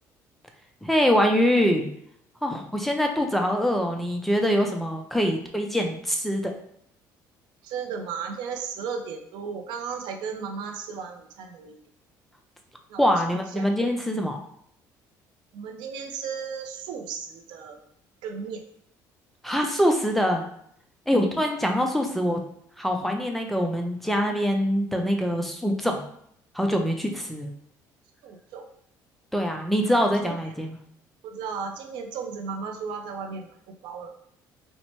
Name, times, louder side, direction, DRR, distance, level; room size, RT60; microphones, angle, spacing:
voice 1, 0.8-1.9 2.4-6.5 13.0-14.4 19.4-20.4 21.1-22.4 22.8-26.0 26.5-27.5 29.3-30.8, equal, ahead, 2 dB, 0.4 m, -24 dB
voice 2, 7.6-11.8 12.9-13.1 13.5-13.7 15.5-17.8 18.2-18.6 28.2-28.7 29.9-30.0 30.2-30.4 31.2-33.5 33.8-34.1, right 6 dB, 80° right, 4 dB, 0.5 m, -35 dB
4.2 x 2.1 x 3.0 m, 0.68 s
cardioid pair, 120°, 8 cm